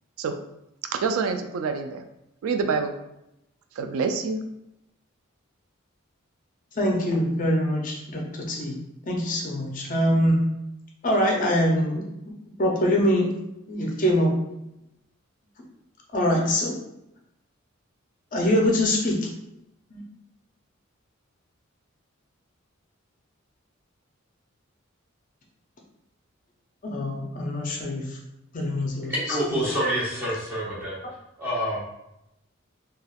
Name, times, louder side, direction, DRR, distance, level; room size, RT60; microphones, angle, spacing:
voice 1, 0.9-2.0 2.4-3.0 3.8-4.4, right 5 dB, 85° right, 8 dB, 0.3 m, -26 dB
voice 2, 6.8-8.8 9.1-10.4 11.0-12.0 12.6-13.3 13.7-14.3 16.1-16.7 18.3-19.2 19.9-20.0 26.8-28.0 28.5-29.1 29.5-29.6, equal, 40° left, -1 dB, 0.5 m, -23 dB
voice 3, 29.1-31.0 31.4-31.8, equal, 10° right, -8 dB, 1.0 m, -27 dB
3.3 x 2.3 x 2.3 m, 0.86 s
head